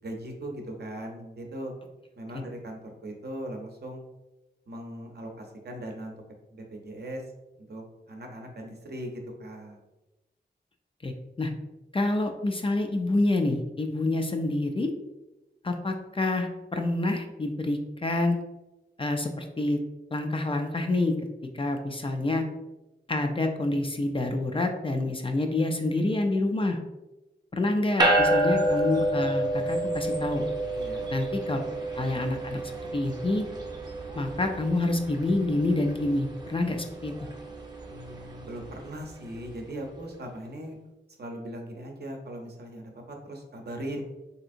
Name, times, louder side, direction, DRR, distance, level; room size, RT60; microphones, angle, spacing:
voice 1, 0.0-1.7 2.2-4.0 4.7-6.1 6.5-7.2 7.6-9.8 30.7-31.1 31.8-31.9 37.9-40.8 41.2-44.0, right 1 dB, 65° right, 2 dB, 0.6 m, -39 dB
voice 2, 11.9-14.9 15.6-18.4 19.0-19.8 20.1-21.2 21.5-22.5 23.1-26.8 27.5-30.4 31.1-31.6 31.9-32.6 32.9-33.5 34.1-37.1, left 2 dB, 30° left, 4 dB, 0.3 m, -27 dB
sound 1, 28.0-39.6, right 1 dB, 25° right, 0.6 m, -30 dB
3.3 x 2.8 x 2.5 m, 1.0 s
wide cardioid pair, 80°, 18 cm